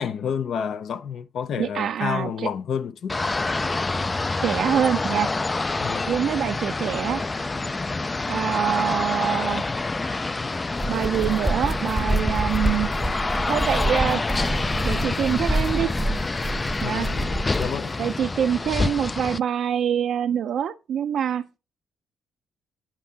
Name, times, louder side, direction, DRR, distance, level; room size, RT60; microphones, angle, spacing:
voice 1, 0.0-3.2 5.8-6.1 16.8-17.9, left 7 dB, 65° left, 0.6 m, -30 dB
voice 2, 1.6-2.5 4.4-5.3 6.1-7.2 8.3-9.6 10.9-12.9 13.5-14.2 14.8-15.9 16.8-17.1 18.0-21.4, right 9 dB, 65° right, 0.5 m, -25 dB
sound 1, 3.1-19.4, left 3 dB, 25° left, 0.3 m, -27 dB
sound 2, 10.6-17.8, right 1 dB, 10° right, 0.7 m, -28 dB
8.9 x 5.3 x 2.8 m
cardioid pair, 90°, 0 cm